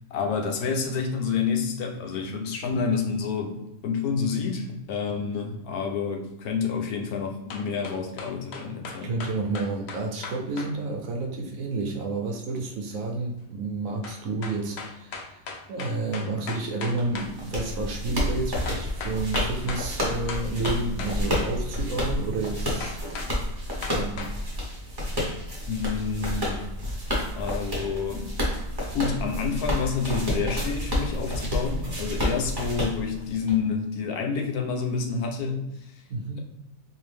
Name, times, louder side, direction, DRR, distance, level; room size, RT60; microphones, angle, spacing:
voice 1, 0.1-3.6 3.8-9.2 25.7-26.7 27.4-28.3 28.9-36.0, left 5 dB, 80° left, 3 dB, 1.1 m, -28 dB
sound 1, 7.5-10.7 14.0-17.3 18.7-19.9 20.3-21.5 22.8-23.3 23.8-24.3, left 4 dB, 65° left, 0.7 m, -37 dB
voice 2, 9.0-15.4 15.7-23.3 23.7-24.4 36.1-36.4, right 3 dB, 65° right, 1 dB, 1.0 m, -30 dB
sound 2, 17.0-33.5, left 1 dB, 20° right, 0.8 m, -30 dB
3.7 x 2.6 x 3.3 m, 0.88 s
omnidirectional pair, 1.6 m